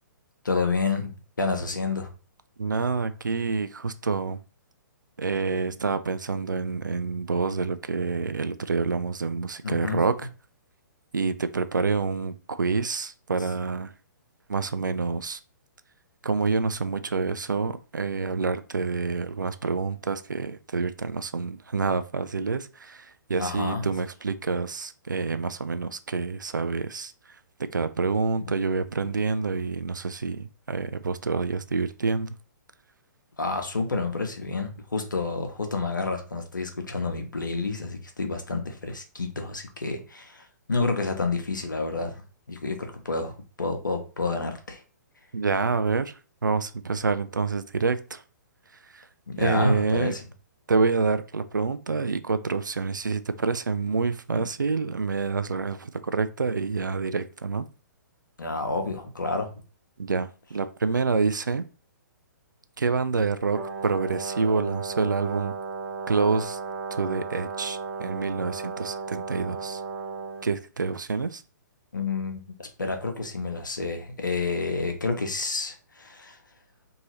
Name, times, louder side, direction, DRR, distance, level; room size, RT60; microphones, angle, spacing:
voice 1, 0.4-2.1 9.6-10.1 13.4-13.5 23.4-24.0 33.4-42.1 42.5-44.8 49.3-50.2 54.3-54.4 58.4-59.5 71.9-76.4, left 3 dB, 75° left, 0.8 m, -29 dB
voice 2, 2.6-4.4 5.2-10.3 11.1-13.9 14.5-15.4 16.2-27.1 27.7-32.3 45.3-46.1 46.4-48.2 48.9-49.0 49.4-50.1 50.7-57.7 60.0-61.7 62.8-65.6 66.1-66.6 66.9-69.8 70.4-71.4, right 4 dB, 75° right, 0.4 m, -27 dB
Brass instrument, 63.5-70.5, right 5 dB, 20° right, 0.7 m, -35 dB
2.7 x 2.7 x 3.0 m
figure-of-eight pair, 120°, 10 cm